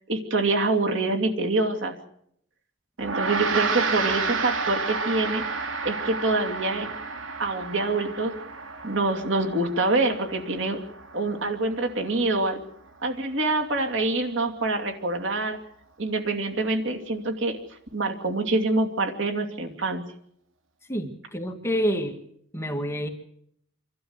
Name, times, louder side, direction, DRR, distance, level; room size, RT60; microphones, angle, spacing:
voice 1, 0.1-2.0 3.0-5.4 5.8-6.9 7.4-8.3 8.8-10.8 11.1-12.6 13.0-15.6 16.0-17.6 17.9-20.0, right 2 dB, 70° right, 4 dB, 2.7 m, -25 dB
Gong, 3.0-12.5, right 4 dB, 90° right, 2.3 m, -31 dB
voice 2, 20.9-22.2 22.5-23.1, equal, 15° left, 4 dB, 2.0 m, -28 dB
26.5 x 13.0 x 8.1 m, 0.71 s
head